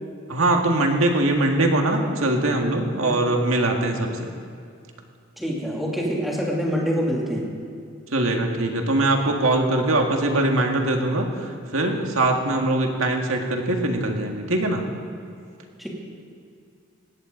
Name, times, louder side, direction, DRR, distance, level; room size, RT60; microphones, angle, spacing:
voice 1, 0.3-4.3 8.1-14.8, right 2 dB, 90° right, 2 dB, 2.0 m, -22 dB
voice 2, 5.4-7.5 15.8-15.9, equal, ahead, -4 dB, 3.0 m, -25 dB
19.5 x 16.5 x 4.0 m, 2.4 s
head